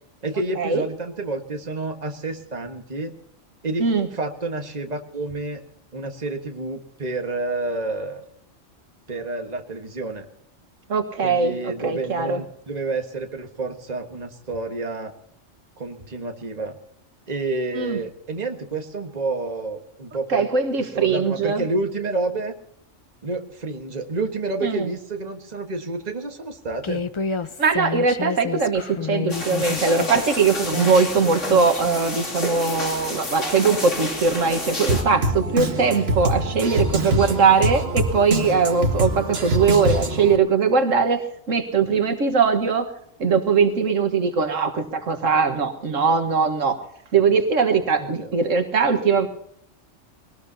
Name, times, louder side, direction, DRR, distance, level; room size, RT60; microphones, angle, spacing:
voice 1, 0.2-3.1 3.6-3.8 4.1-5.6 5.9-8.2 9.1-10.2 11.2-15.1 15.8-16.8 17.3-20.5 20.8-22.5 23.2-27.0 48.0-48.3, right 3 dB, 35° right, 4 dB, 1.6 m, -29 dB
voice 2, 10.9-11.6 11.8-12.4 17.8-18.0 20.3-21.6 24.6-24.9 27.6-42.9 43.2-46.8 47.1-49.3, right 5 dB, 80° right, 7 dB, 1.8 m, -21 dB
Human voice, 26.8-32.0, left 5 dB, 30° left, 0.6 m, -30 dB
sound 1, 29.3-35.0, left 2 dB, 70° left, 3.2 m, -30 dB
Drum kit, 34.9-40.4, right 1 dB, 55° right, 1.8 m, -24 dB
22.5 x 18.5 x 2.8 m, 0.69 s
omnidirectional pair, 1.3 m